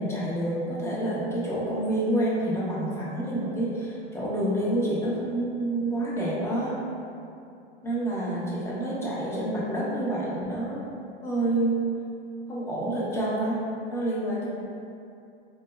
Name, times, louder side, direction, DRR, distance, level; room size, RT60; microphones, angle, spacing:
voice 1, 0.0-6.8 7.8-10.8 11.2-11.8 12.5-13.6 13.9-14.5, right 1 dB, 10° left, -7 dB, 0.4 m, -28 dB
2.2 x 2.0 x 3.1 m, 2.5 s
hypercardioid pair, 105°, 33 cm